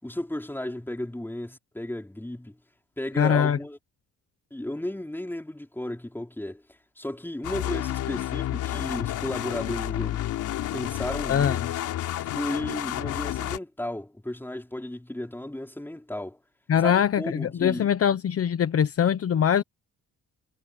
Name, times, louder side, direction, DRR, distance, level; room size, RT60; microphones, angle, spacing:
voice 1, 0.0-2.6 3.0-3.8 4.5-6.6 7.0-10.3 10.7-11.6 12.3-16.4 16.8-17.9, left 1 dB, 5° left, 4.5 m, -34 dB
voice 2, 3.2-3.6 11.3-11.7 16.7-19.6, left 8 dB, 50° left, 1.2 m, -22 dB
sound 1, 7.4-13.6, left 13 dB, 85° left, 3.7 m, -30 dB
cardioid pair, 90°, 30 cm